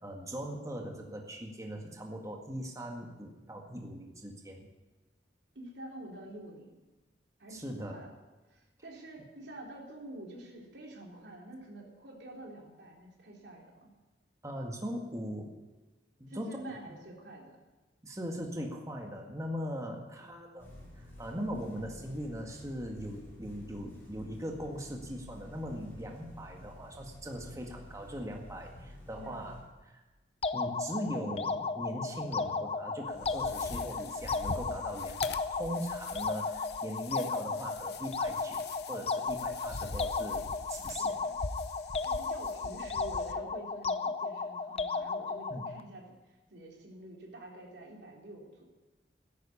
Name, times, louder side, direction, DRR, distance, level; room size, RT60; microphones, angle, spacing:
voice 1, 0.0-4.7 7.5-8.0 14.4-15.5 16.2-16.6 16.9-17.0 18.0-20.7 21.0-29.6 29.9-30.0 30.5-41.2 45.5-45.7, equal, 20° right, 1 dB, 1.9 m, -40 dB
voice 2, 5.6-6.8 7.4-8.1 8.5-13.9 16.3-17.6 20.2-20.8 29.2-29.6 41.0-41.4 42.0-48.7, right 1 dB, 75° right, -1 dB, 3.8 m, -48 dB
sound 1, 20.6-29.6, left 1 dB, 15° left, 6.4 m, -50 dB
sound 2, 30.4-45.8, left 4 dB, 35° left, 0.7 m, -34 dB
sound 3, 33.1-43.3, left 4 dB, 70° left, 0.9 m, -44 dB
13.5 x 11.0 x 8.6 m, 1.2 s
head